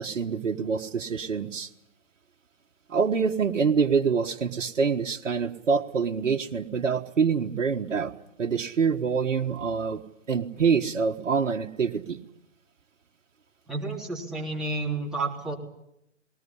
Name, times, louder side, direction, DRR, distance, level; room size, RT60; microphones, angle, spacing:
voice 1, 0.0-1.7 2.9-8.1 8.4-10.0 10.3-12.2, right 5 dB, 70° right, 3 dB, 1.5 m, -26 dB
voice 2, 13.7-15.5, right 3 dB, ahead, -4 dB, 3.7 m, -31 dB
20.0 x 19.5 x 9.9 m, 0.83 s
figure-of-eight pair, 130°, 38 cm